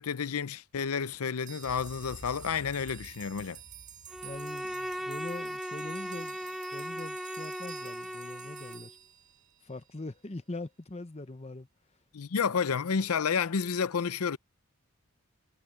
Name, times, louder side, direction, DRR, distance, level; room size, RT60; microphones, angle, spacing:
voice 1, 0.0-3.6 12.1-14.4, left 6 dB, 80° left, 0.6 m, -30 dB
sound 1, 1.4-9.9, right 11 dB, 35° right, 1.9 m, -51 dB
Boom, 1.6-5.9, equal, 60° left, 3.1 m, -52 dB
Bowed string instrument, 4.1-8.9, equal, ahead, 0.9 m, -38 dB
voice 2, 4.2-6.4 6.7-8.9 9.6-11.7, left 2 dB, 30° left, 0.8 m, -42 dB
head